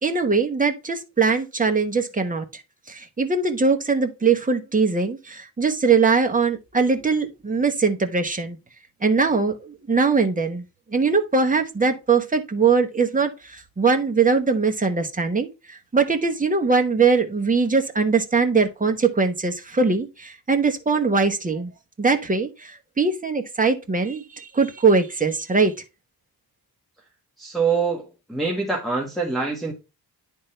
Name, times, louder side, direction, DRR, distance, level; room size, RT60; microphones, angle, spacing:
voice 1, 0.0-2.4 2.9-8.6 9.0-10.6 10.9-15.5 15.9-21.7 22.0-22.7 23.0-25.7, right 4 dB, 20° right, 1.0 m, -21 dB
voice 2, 27.4-29.7, right 4 dB, ahead, 1.5 m, -25 dB
10.5 x 3.6 x 4.4 m
wide cardioid pair, 145°, 40 cm